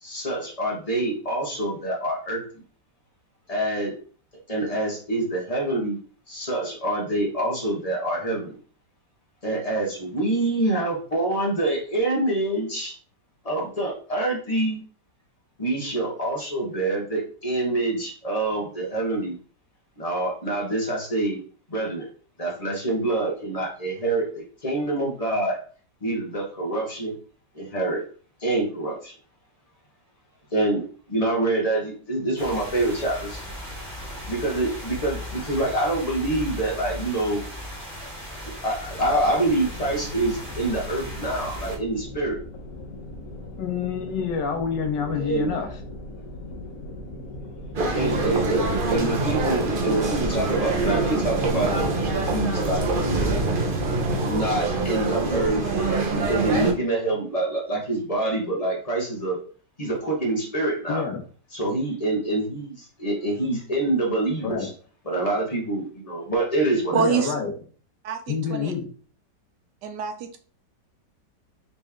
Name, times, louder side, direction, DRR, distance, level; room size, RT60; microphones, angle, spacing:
voice 1, 0.0-2.4 3.5-3.9 4.5-6.0 6.3-8.6 9.4-13.0 13.4-14.8 15.6-19.3 20.0-21.4 21.7-22.1 22.4-25.6 26.0-27.1 27.5-28.0 28.4-29.1 30.5-30.8 31.1-33.4 34.2-37.4 38.6-42.4 45.2-45.5 47.9-53.4 54.3-55.7 56.1-59.4 59.8-61.0 61.5-64.7 65.0-67.0, right 2 dB, 25° left, -2 dB, 1.2 m, -26 dB
sound 1, 32.4-41.8, equal, 5° left, 1.9 m, -37 dB
sound 2, 38.8-55.9, left 1 dB, 50° left, 1.3 m, -39 dB
voice 2, 43.6-45.7 60.9-61.2 64.4-64.7 66.9-67.5 68.3-68.9, left 6 dB, 80° left, 4 dB, 1.5 m, -27 dB
sound 3, 47.8-56.7, right 2 dB, 45° right, 0.7 m, -25 dB
voice 3, 66.9-67.4 68.0-68.2 68.5-68.7 69.8-70.4, right 6 dB, 75° right, 5 dB, 1.3 m, -25 dB
4.2 x 3.2 x 3.5 m, 0.42 s
omnidirectional pair, 1.9 m